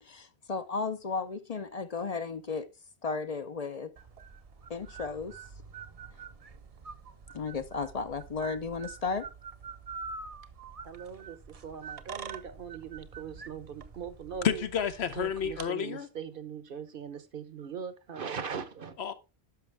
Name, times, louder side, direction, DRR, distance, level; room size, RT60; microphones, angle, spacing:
voice 1, 0.0-2.7 3.0-3.9 4.7-5.4 7.3-9.3, left 4 dB, 45° left, 0.6 m, -34 dB
sound 1, 4.0-15.7, right 5 dB, 40° right, 0.7 m, -46 dB
voice 2, 10.8-14.6 15.1-19.0, right 7 dB, 60° right, 1.0 m, -40 dB
voice 3, 14.4-16.1 19.0-19.1, left 8 dB, 80° left, 1.1 m, -30 dB
10.5 x 6.3 x 3.4 m
omnidirectional pair, 1.1 m